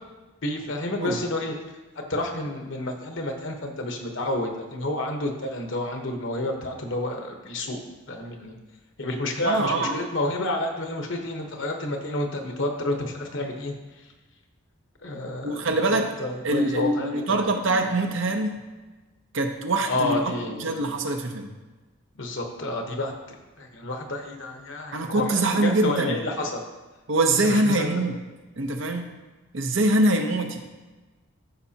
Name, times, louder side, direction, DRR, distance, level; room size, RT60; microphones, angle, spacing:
voice 1, 0.4-1.5 1.9-7.8 8.1-8.6 9.0-13.7 15.0-15.6 15.9-17.5 19.9-20.8 22.2-26.6 27.4-27.9, left 1 dB, 55° left, 3 dB, 1.1 m, -30 dB
voice 2, 9.4-10.0 15.4-16.1 16.4-18.6 19.3-20.3 20.6-21.5 24.9-26.2 27.1-28.2 28.6-29.1 29.5-30.6, right 2 dB, 60° right, 4 dB, 0.8 m, -24 dB
13.5 x 5.5 x 2.9 m, 1.2 s
head